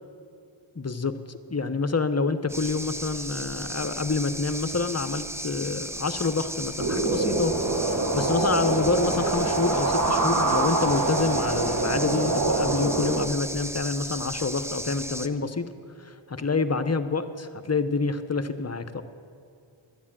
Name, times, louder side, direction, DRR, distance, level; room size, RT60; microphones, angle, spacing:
voice 1, 0.8-15.7 16.0-19.0, left 4 dB, 30° left, 11 dB, 0.7 m, -27 dB
sound 1, 2.5-15.3, right 1 dB, 5° right, 0.6 m, -36 dB
sound 2, 6.8-13.3, right 2 dB, 35° right, 1.2 m, -25 dB
12.5 x 9.7 x 7.4 m, 2.4 s
wide cardioid pair, 50°, 49 cm